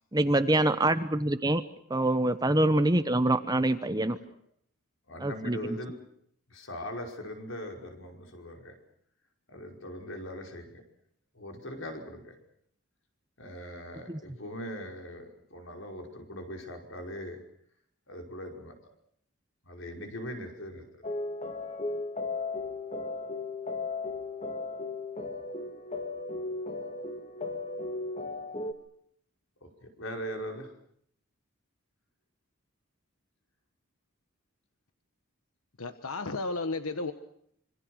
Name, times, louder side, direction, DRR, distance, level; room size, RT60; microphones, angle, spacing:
voice 1, 0.1-1.6 1.9-4.2 5.2-5.8 14.1-14.2, right 1 dB, 20° right, 12 dB, 1.0 m, -25 dB
voice 2, 5.1-5.9 6.5-8.8 9.5-10.8 11.3-12.4 13.4-17.4 18.1-18.7 19.7-20.8 29.6-30.7, equal, 60° left, 3 dB, 5.5 m, -40 dB
sound 1, 21.0-28.7, left 3 dB, 30° left, 2.1 m, -36 dB
voice 3, 35.8-37.1, left 3 dB, 80° left, 9 dB, 1.4 m, -33 dB
26.5 x 25.0 x 6.5 m, 0.70 s
head